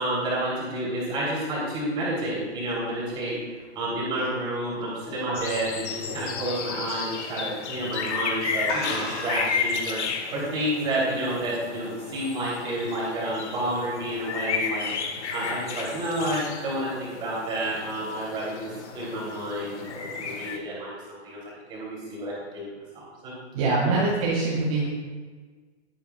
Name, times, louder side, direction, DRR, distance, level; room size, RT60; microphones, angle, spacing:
voice 1, 0.0-3.4 3.7-10.0 10.3-14.9 15.3-22.6 22.9-23.3 23.8-23.9, right 1 dB, 15° right, -6 dB, 3.3 m, -30 dB
sound 1, 2.5-5.6 6.0-6.4 6.7-6.8 7.7-7.9 8.2-8.3 8.6-9.6, left 3 dB, 25° left, 1.8 m, -35 dB
sound 2, 5.3-20.6, left 5 dB, 75° left, 1.8 m, -33 dB
voice 2, 23.5-24.9, right 3 dB, 30° right, -6 dB, 2.0 m, -23 dB
19.0 x 9.0 x 2.4 m, 1.4 s
hypercardioid pair, 175°, 35 cm